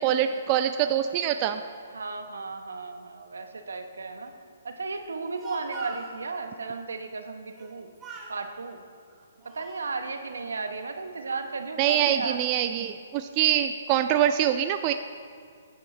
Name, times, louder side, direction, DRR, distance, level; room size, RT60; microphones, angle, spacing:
voice 1, 0.0-1.6 11.8-14.9, right 10 dB, 30° right, 8 dB, 0.4 m, -24 dB
voice 2, 1.9-4.3 4.6-7.9 8.3-8.8 9.4-12.4, right 4 dB, 85° right, 6 dB, 1.0 m, -35 dB
Speech, 5.3-6.2 7.5-7.7 8.0-8.4 9.1-9.9, right 4 dB, 15° right, 1.5 m, -43 dB
14.5 x 9.4 x 3.3 m, 2.2 s
hypercardioid pair, 140°, 0 cm